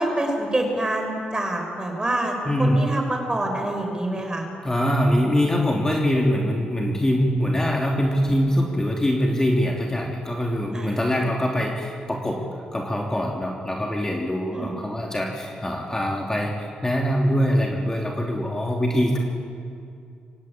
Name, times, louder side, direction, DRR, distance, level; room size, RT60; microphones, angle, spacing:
voice 1, 0.0-4.5 10.7-11.2 14.5-14.7, right 1 dB, 20° right, 3 dB, 6.4 m, -26 dB
voice 2, 2.5-2.8 4.6-12.4 12.7-16.5 16.8-19.2, equal, 15° left, 0 dB, 3.2 m, -23 dB
24.5 x 18.0 x 8.8 m, 2.5 s
cardioid pair, 70°, 3 cm